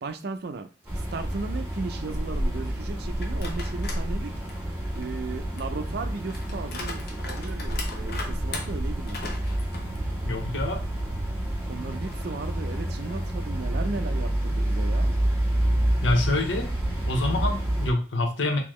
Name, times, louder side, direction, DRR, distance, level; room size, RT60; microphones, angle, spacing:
voice 1, 0.0-0.7 1.0-4.3 4.9-9.4 11.7-15.1, right 3 dB, 60° right, 0.4 m, -36 dB
Summer morning in a Moscow, 0.8-17.9, right 1 dB, 10° right, 1.6 m, -28 dB
sound 1, 3.2-4.1 4.5-10.6 11.0-11.1 12.0-13.5, left 3 dB, 55° left, 0.8 m, -41 dB
voice 2, 10.2-10.8 16.0-16.7 17.1-18.6, left 2 dB, 90° left, 0.8 m, -26 dB
3.7 x 2.9 x 3.0 m
head